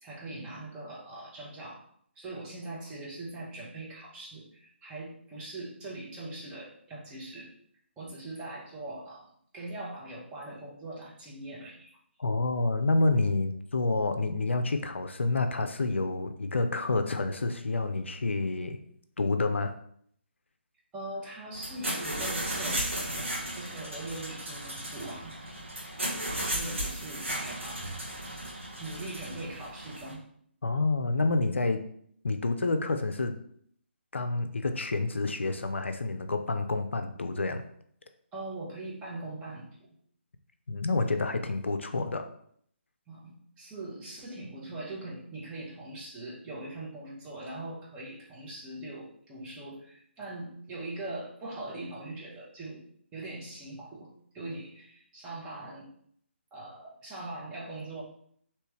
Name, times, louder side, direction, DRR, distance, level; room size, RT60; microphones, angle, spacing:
voice 1, 0.0-1.8 2.1-7.5 8.0-11.9 20.9-23.3 23.5-25.4 26.4-28.0 28.5-30.2 38.3-39.9 43.1-52.8 53.1-55.9 56.5-58.0, right 2 dB, 15° right, -5 dB, 0.9 m, -41 dB
voice 2, 12.2-18.8 19.2-19.7 30.6-31.8 32.2-33.4 34.1-37.6 40.7-42.3, left 3 dB, 70° left, 7 dB, 0.4 m, -28 dB
sound 1, 21.5-30.1, right 1 dB, 80° right, 1.4 m, -35 dB
3.3 x 2.9 x 3.0 m, 0.64 s
figure-of-eight pair, 145°, 7 cm